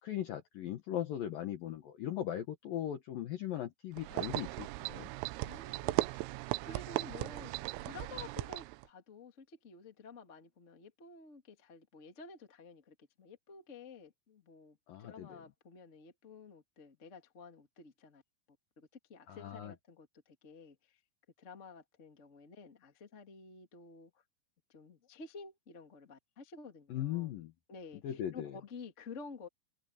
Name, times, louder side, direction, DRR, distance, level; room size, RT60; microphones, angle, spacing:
voice 1, 0.0-5.1 14.9-15.3 19.3-19.7 26.9-27.5 28.0-28.5, left 11 dB, 70° left, 2.2 m, -39 dB
sound 1, 4.0-8.8, right 20 dB, 85° right, 3.3 m, -37 dB
voice 2, 5.4-6.0 6.6-18.2 18.8-21.0 21.4-24.1 24.7-27.3 27.7-29.5, left 4 dB, 35° left, 1.1 m, -52 dB
omnidirectional pair, 5.8 m